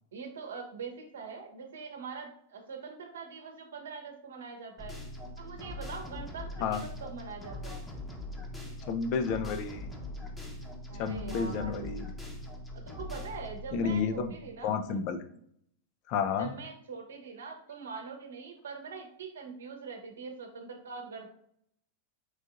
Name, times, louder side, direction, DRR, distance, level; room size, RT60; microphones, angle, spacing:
voice 1, 0.1-5.0 5.4-7.8 10.9-11.7 12.7-14.7 16.4-21.3, right 5 dB, 65° right, 3 dB, 0.9 m, -43 dB
sound 1, 4.8-14.7, left 1 dB, 10° left, 0.9 m, -42 dB
voice 2, 8.9-9.9 10.9-12.1 13.7-14.4 14.6-15.2 16.1-16.5, left 6 dB, 45° left, 8 dB, 0.5 m, -31 dB
4.8 x 3.6 x 2.5 m, 0.68 s
figure-of-eight pair, 90°, 0 cm